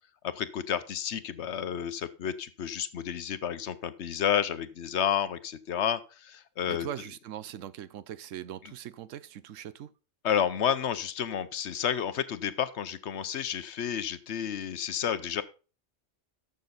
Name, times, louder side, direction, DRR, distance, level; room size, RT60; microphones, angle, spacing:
voice 1, 0.3-6.9 10.2-15.4, left 9 dB, 65° left, 1.0 m, -31 dB
voice 2, 6.7-9.9, right 10 dB, 85° right, 1.0 m, -41 dB
12.5 x 6.5 x 4.0 m
omnidirectional pair, 1.3 m